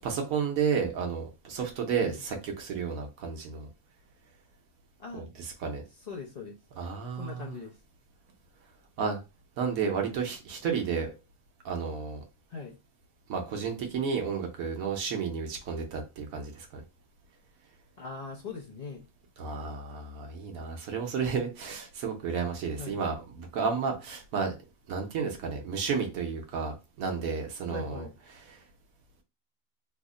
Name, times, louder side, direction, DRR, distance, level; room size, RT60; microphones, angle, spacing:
voice 1, 0.0-3.7 5.1-5.8 6.8-7.6 9.0-9.2 9.6-11.1 11.6-12.2 13.3-16.8 19.4-24.5 24.9-28.6, right 6 dB, 85° right, 1.2 m, -32 dB
voice 2, 6.1-6.5 7.2-7.7 12.5-12.8 18.0-19.0 22.8-23.0 27.7-28.1, left 4 dB, 45° left, 0.6 m, -40 dB
3.2 x 2.1 x 3.7 m
omnidirectional pair, 1.4 m